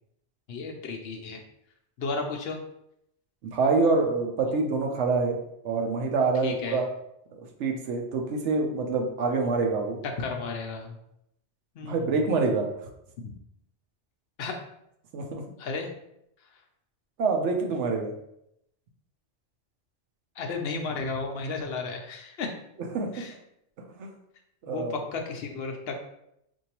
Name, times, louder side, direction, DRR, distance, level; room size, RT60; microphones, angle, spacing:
voice 1, 0.5-1.4 2.0-2.6 4.4-4.5 6.4-6.8 10.2-11.0 11.8-12.2 13.2-13.3 14.4-14.6 15.6-15.9 20.4-22.5 23.1-23.3 24.6-26.1, left 4 dB, 65° left, 3 dB, 0.8 m, -33 dB
voice 2, 3.5-5.4 5.6-6.9 7.6-10.0 11.8-12.7 15.1-15.4 17.2-18.1 22.9-23.1 24.0-24.1 24.7-25.0, right 4 dB, 90° right, 3 dB, 1.0 m, -26 dB
4.5 x 2.6 x 2.9 m, 0.78 s
omnidirectional pair, 1.2 m